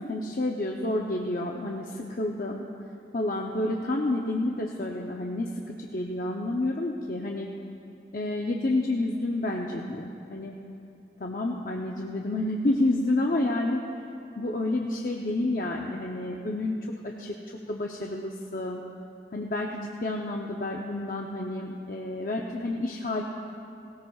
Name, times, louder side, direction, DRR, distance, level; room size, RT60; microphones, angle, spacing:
voice 1, 0.0-2.6 3.1-7.5 8.1-10.6 11.2-13.8 14.4-16.8 17.0-18.8 19.3-23.2, left 2 dB, 50° left, 0 dB, 0.7 m, -29 dB
18.5 x 17.5 x 2.4 m, 2.7 s
head